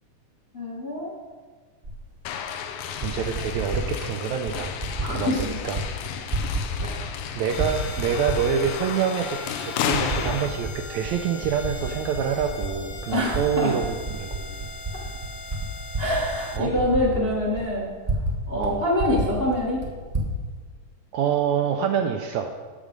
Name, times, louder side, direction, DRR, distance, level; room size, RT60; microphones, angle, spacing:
voice 1, 0.5-1.1 5.0-5.6 6.8-6.9 10.0-10.1 13.1-13.7 14.9-15.0 16.0-17.9 18.5-19.8, left 1 dB, 35° left, -3 dB, 0.9 m, -25 dB
Typing, 1.8-2.0 2.8-3.9 4.5-5.1 5.4-5.9 6.1-7.2 7.5-8.7 9.3-9.4 9.9-10.8 11.0-13.4 13.8-18.4 18.6-18.7 19.0-20.3, right 2 dB, 35° right, 0.6 m, -30 dB
sound 1, 2.3-10.5, left 8 dB, 75° left, 2.0 m, -32 dB
voice 2, 3.0-4.8 5.1-5.8 7.0-13.8 14.1-14.7 16.5-16.7 18.6-18.8 21.1-22.5, right 7 dB, 80° right, 5 dB, 1.7 m, -26 dB
sound 2, 7.5-16.6, left 3 dB, 60° left, 2.6 m, -41 dB
9.9 x 7.4 x 5.2 m, 1.5 s
omnidirectional pair, 3.7 m